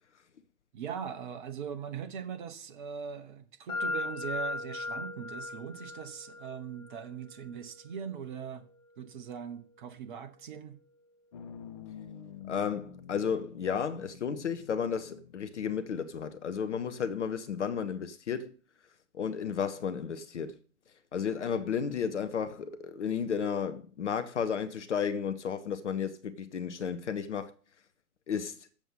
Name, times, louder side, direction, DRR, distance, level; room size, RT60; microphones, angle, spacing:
voice 1, 0.7-8.6 9.0-10.8, right 7 dB, 35° right, 0.9 m, -40 dB
sound 1, 3.7-11.5, left 2 dB, 10° left, 1.6 m, -41 dB
sound 2, 11.3-17.1, left 8 dB, 25° left, 0.6 m, -49 dB
voice 2, 12.5-18.5 19.1-20.5 21.1-27.5 28.3-28.6, left 7 dB, 50° left, 0.8 m, -33 dB
7.4 x 7.0 x 5.7 m
figure-of-eight pair, 120°, 44 cm